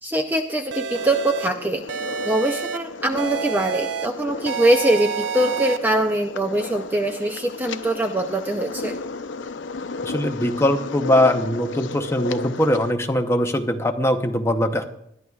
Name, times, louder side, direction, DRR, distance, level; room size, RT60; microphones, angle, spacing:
voice 1, 0.0-2.0 2.2-9.0, right 1 dB, 10° right, 4 dB, 0.6 m, -23 dB
sound 1, 0.7-1.5 1.9-2.8 3.2-4.1 4.5-5.8, right 7 dB, 80° right, 0.5 m, -29 dB
sound 2, 0.9-12.9, left 3 dB, 90° left, 0.6 m, -34 dB
voice 2, 10.0-14.8, left 1 dB, 15° left, 5 dB, 0.8 m, -21 dB
20.5 x 13.0 x 2.4 m, 0.76 s
head